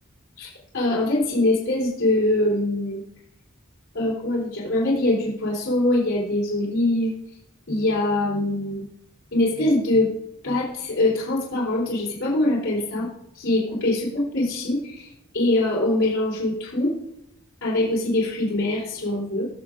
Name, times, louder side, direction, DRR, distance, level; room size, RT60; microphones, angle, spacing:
voice 1, 0.7-3.0 3.9-7.1 7.7-8.8 9.3-10.1 10.4-13.1 13.3-16.9 17.6-19.4, left 1 dB, 65° left, -8 dB, 3.5 m, -23 dB
19.0 x 6.7 x 2.5 m, 0.76 s
head